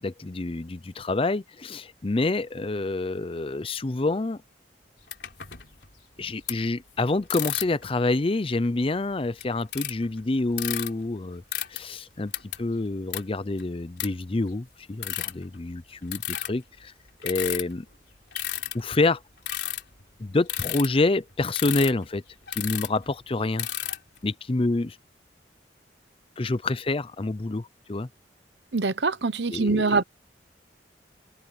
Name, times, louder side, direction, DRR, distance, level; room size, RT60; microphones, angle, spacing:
voice 1, 0.0-4.4 6.2-11.4 11.7-12.3 12.6-16.9 17.2-17.9 18.7-19.2 20.2-22.2 22.6-23.7 24.2-25.0 26.4-28.1 29.5-30.0, left 2 dB, 30° left, 0.6 m, -27 dB
sound 1, 5.1-5.9 6.5-6.6 7.3-7.9 8.6-8.7 9.2-10.2 10.5-10.9 11.5-11.8 12.3-12.6 13.1-13.2 13.6-13.7 14.0-14.1 14.4-14.5 15.0-15.4 16.1-16.5 17.2-17.7 18.3-18.9 19.5-20.0 20.5-20.9 21.5-22.0 22.5-23.0 23.6-24.2, left 13 dB, 70° left, 3.8 m, -31 dB
voice 2, 28.7-30.0, right 3 dB, 75° right, 1.0 m, -24 dB
head